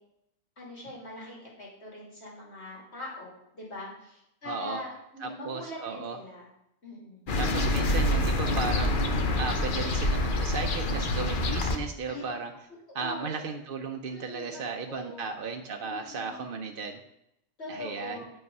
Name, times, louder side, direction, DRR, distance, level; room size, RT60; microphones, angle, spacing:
voice 1, 0.6-6.5 6.8-7.3 12.1-12.2 13.0-13.3 14.1-15.3 15.8-16.4 17.6-18.3, left 1 dB, 75° left, -4 dB, 3.1 m, -42 dB
voice 2, 4.5-4.8 5.2-6.2 7.3-12.5 12.9-17.0 17.7-18.2, right 4 dB, 55° right, 3 dB, 0.8 m, -35 dB
sound 1, 7.3-11.8, left 1 dB, 50° left, 1.0 m, -26 dB
8.8 x 5.6 x 5.3 m, 0.81 s
omnidirectional pair, 1.1 m